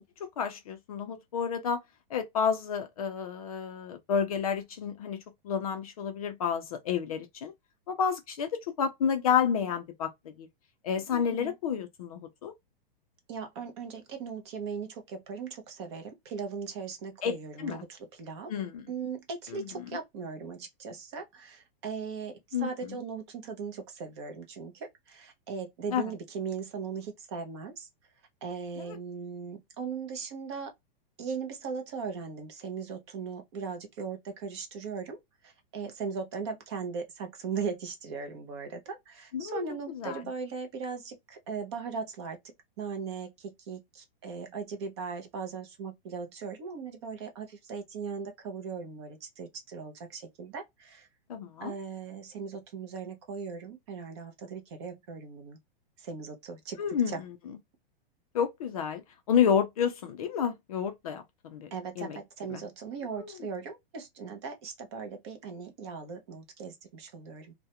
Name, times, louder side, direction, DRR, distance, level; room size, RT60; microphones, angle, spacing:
voice 1, 0.2-1.8 2.1-5.2 5.4-7.5 7.9-10.1 10.4-10.5 10.8-12.5 17.2-17.8 18.5-18.9 19.5-19.6 22.5-23.0 25.9-26.1 28.8-29.0 39.3-39.6 39.9-40.2 51.3-51.7 56.8-57.3 58.3-59.0 59.3-61.7 62.0-62.2 62.5-62.6 63.2-63.3, left 7 dB, 40° left, 0.4 m, -30 dB
voice 2, 11.1-11.5 13.3-18.5 18.9-22.3 22.6-27.9 28.4-30.7 31.2-35.2 35.4-42.4 42.8-51.1 51.6-55.6 56.0-57.2 61.7-67.5, right 5 dB, 30° right, 0.6 m, -38 dB
2.3 x 2.1 x 2.7 m
supercardioid pair, 165°, 30 cm